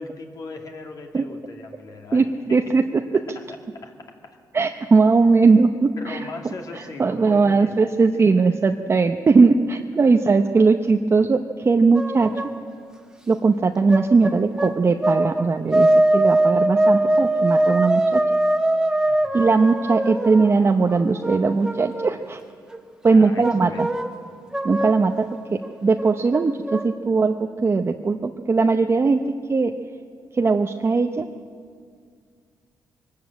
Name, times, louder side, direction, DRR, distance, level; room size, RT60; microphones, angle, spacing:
voice 1, 0.0-2.2 3.3-3.4 3.8-4.4 6.0-7.7 8.1-8.2 12.2-12.4 19.0-19.4 23.1-23.9, left 3 dB, 50° left, 2 dB, 2.4 m, -39 dB
voice 2, 2.1-2.8 4.5-6.2 7.0-12.3 13.3-18.2 19.3-22.4 23.0-23.9 24.6-27.4 27.6-29.2 29.5-29.7 30.3-31.3, right 4 dB, 35° right, 5 dB, 0.8 m, -19 dB
sound 1, 11.9-12.6 13.9-15.5 15.7-22.1 22.7-24.2 24.5-25.0 25.6-25.7 26.0-26.8, right 1 dB, 5° right, 1.5 m, -21 dB
22.5 x 13.0 x 8.8 m, 2.1 s
cardioid pair, 100°, 8 cm